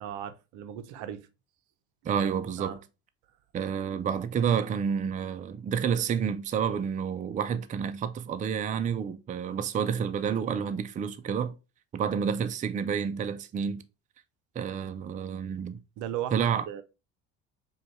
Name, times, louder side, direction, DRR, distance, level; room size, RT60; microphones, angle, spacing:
voice 1, 0.0-1.3 2.6-2.8 16.0-16.8, right 10 dB, 65° right, 0.6 m, -36 dB
voice 2, 2.0-2.8 3.5-11.5 11.9-13.8 14.6-15.8 16.3-16.6, right 7 dB, 25° right, 0.4 m, -29 dB
5.0 x 2.4 x 3.1 m
hypercardioid pair, 75°, 33 cm